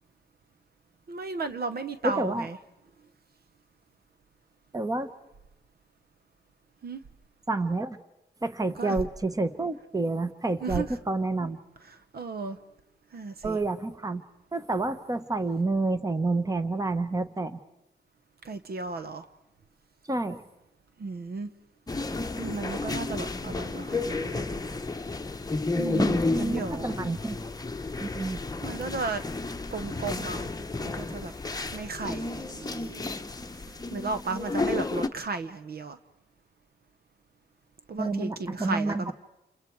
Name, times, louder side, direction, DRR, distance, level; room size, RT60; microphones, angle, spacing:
voice 1, 1.1-2.6 6.8-7.0 8.8-9.0 10.6-11.0 11.8-12.6 13.1-13.6 18.4-19.3 21.0-21.5 22.4-24.6 25.8-27.0 28.6-29.2 29.7-30.5 30.8-31.3 31.7-33.1 33.9-36.0 37.9-39.1, right 4 dB, 60° right, 9 dB, 1.1 m, -34 dB
voice 2, 2.0-2.5 4.7-5.1 7.5-8.0 8.4-11.6 13.4-14.2 14.5-17.6 20.0-20.4 26.3-27.4 28.0-28.4 38.0-39.1, right 2 dB, 20° right, 11 dB, 1.2 m, -29 dB
sound 1, 21.9-35.1, left 3 dB, 20° left, 0.9 m, -32 dB
29.5 x 28.5 x 4.7 m, 0.93 s
cardioid pair, 95°, 18 cm